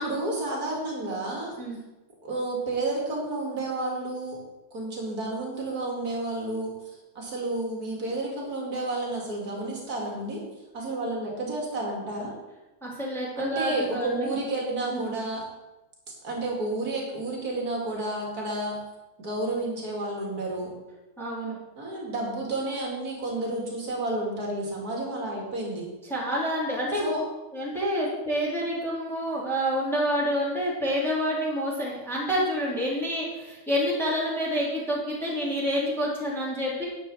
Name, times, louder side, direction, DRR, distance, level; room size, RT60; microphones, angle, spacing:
voice 1, 0.0-1.5 2.2-4.4 4.7-6.7 7.1-10.4 10.7-12.3 13.4-15.4 16.2-18.8 19.2-20.7 21.8-25.9 27.0-27.2, right 2 dB, 45° right, -2 dB, 3.2 m, -31 dB
voice 2, 12.8-14.3 14.9-15.1 21.2-21.6 26.1-27.1 27.5-36.8, equal, ahead, -5 dB, 2.8 m, -28 dB
11.0 x 5.4 x 7.3 m, 1.0 s
omnidirectional pair, 2.3 m